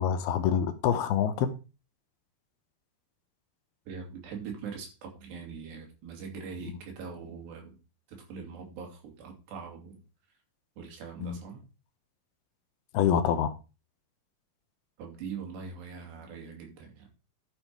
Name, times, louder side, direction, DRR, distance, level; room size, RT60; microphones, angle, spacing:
voice 1, 0.0-1.6 6.7-6.8 11.2-11.4 12.9-13.5, left 8 dB, 75° left, 2.7 m, -26 dB
voice 2, 3.9-7.8 8.1-10.0 10.8-11.6 15.0-17.1, right 5 dB, 80° right, 4.8 m, -42 dB
11.5 x 6.4 x 4.6 m
omnidirectional pair, 4.8 m